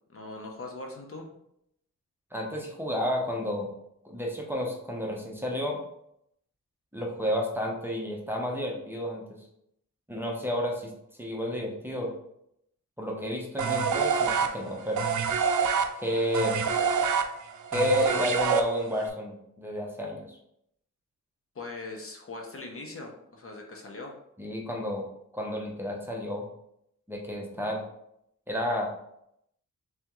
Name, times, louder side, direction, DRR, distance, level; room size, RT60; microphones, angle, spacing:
voice 1, 0.1-1.2 16.8-16.9 21.5-24.1, left 2 dB, 45° left, 2 dB, 0.7 m, -41 dB
voice 2, 2.3-3.7 4.0-5.8 6.9-9.4 10.1-10.9 11.2-12.1 13.0-15.1 16.0-16.6 17.7-20.4 24.4-25.0 25.3-26.5 27.1-27.8 28.5-28.9, left 1 dB, 5° right, -1 dB, 0.7 m, -31 dB
sound 1, 13.6-19.1, right 5 dB, 70° right, 0.5 m, -26 dB
3.5 x 3.4 x 3.0 m, 0.76 s
wide cardioid pair, 95°, 32 cm